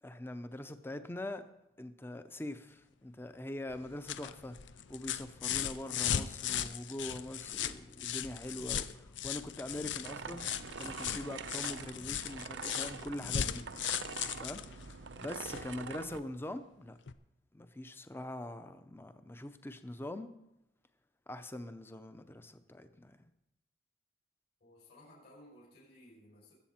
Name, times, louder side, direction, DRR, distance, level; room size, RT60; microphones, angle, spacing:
voice 1, 0.0-1.5 1.8-4.6 4.9-13.6 14.4-14.6 15.2-17.0 17.5-20.3 21.3-23.2, left 1 dB, 10° left, 10 dB, 0.6 m, -43 dB
sound 1, 3.7-15.7 17.1-17.2, left 9 dB, 85° left, 0.6 m, -38 dB
sound 2, 10.0-16.2, right 5 dB, 85° right, 0.7 m, -45 dB
voice 2, 24.6-26.5, left 1 dB, 60° left, -7 dB, 5.8 m, -58 dB
21.0 x 8.1 x 4.4 m, 0.85 s
head